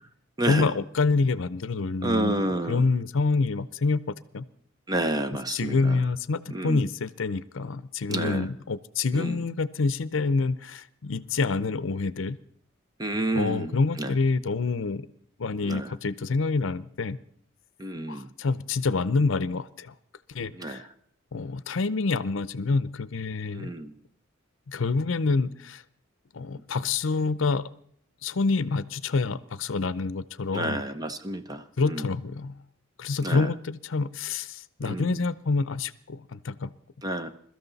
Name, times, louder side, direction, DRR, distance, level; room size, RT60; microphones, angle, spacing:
voice 1, 0.5-2.4 2.7-4.4 5.5-12.4 13.3-15.1 15.4-17.2 18.1-19.9 20.3-20.8 21.3-23.7 24.7-25.8 26.3-27.7 28.2-30.8 31.8-32.6 33.0-36.7, left 4 dB, 70° left, 17 dB, 0.6 m, -27 dB
voice 2, 2.0-2.8 4.9-6.0 6.5-6.8 8.1-8.5 9.1-9.4 13.0-14.1 15.6-15.9 17.8-18.3 20.5-20.8 23.5-23.9 30.5-32.1 33.2-33.5 34.8-35.3 37.0-37.3, right 1 dB, 20° right, 10 dB, 0.8 m, -30 dB
22.0 x 13.5 x 4.1 m, 0.62 s
head